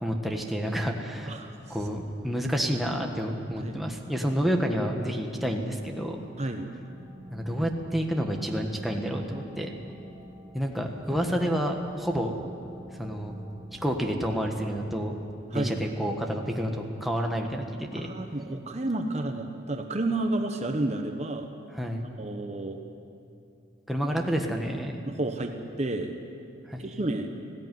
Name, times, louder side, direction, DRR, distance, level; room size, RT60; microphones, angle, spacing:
voice 1, 0.0-1.3 1.7-6.2 7.3-9.7 10.5-12.3 12.9-13.4 13.7-15.2 15.5-18.1 21.7-22.0 23.9-25.0 26.7-26.8, equal, ahead, 1 dB, 1.4 m, -29 dB
sound 1, 3.3-14.1, right 1 dB, 15° right, 1.9 m, -49 dB
voice 2, 6.4-6.7 15.5-15.8 17.9-21.5 22.2-22.8 25.1-26.1 26.8-27.3, right 2 dB, 35° right, 5 dB, 1.1 m, -31 dB
19.5 x 15.5 x 9.4 m, 2.6 s
head